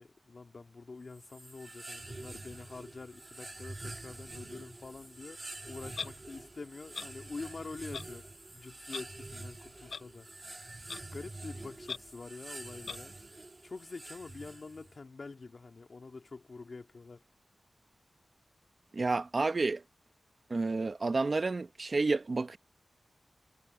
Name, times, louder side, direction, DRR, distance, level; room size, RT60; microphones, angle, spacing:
voice 1, 0.0-8.2 8.5-10.3 11.1-13.1 13.6-17.2, left 3 dB, 55° left, 2.3 m, -46 dB
sound 1, 1.1-15.0, right 2 dB, 30° right, 2.4 m, -47 dB
Clock, 5.9-6.1 6.9-7.1 7.9-8.0 8.9-9.0 9.9-10.0 10.9-11.0 11.9-12.0 12.9-13.0, left 5 dB, 85° left, 0.6 m, -38 dB
voice 2, 18.9-19.8 20.5-22.6, right 3 dB, 50° right, 1.4 m, -30 dB
wide cardioid pair, 65°, 0 cm